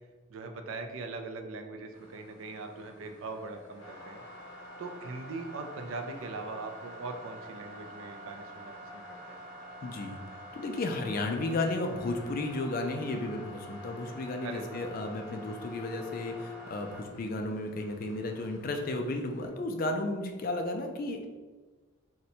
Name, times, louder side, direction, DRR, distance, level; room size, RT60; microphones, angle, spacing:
voice 1, 0.3-4.2 4.8-9.4 14.4-14.9, right 3 dB, 70° right, 5 dB, 0.4 m, -41 dB
sound 1, 1.9-19.5, equal, 60° left, 0.8 m, -48 dB
voice 2, 9.8-10.2 10.5-21.3, left 2 dB, 40° left, 4 dB, 0.3 m, -33 dB
2.6 x 2.1 x 4.0 m, 1.3 s
head